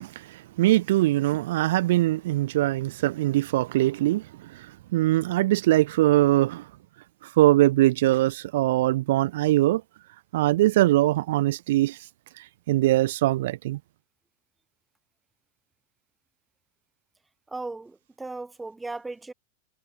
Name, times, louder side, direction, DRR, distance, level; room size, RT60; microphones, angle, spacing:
voice 1, 0.0-6.7 7.2-9.8 10.3-12.1 12.4-13.8, right 16 dB, 60° right, 0.6 m, -22 dB
voice 2, 17.5-19.3, right 3 dB, 5° right, 1.4 m, -36 dB
supercardioid pair, 165°, 0 cm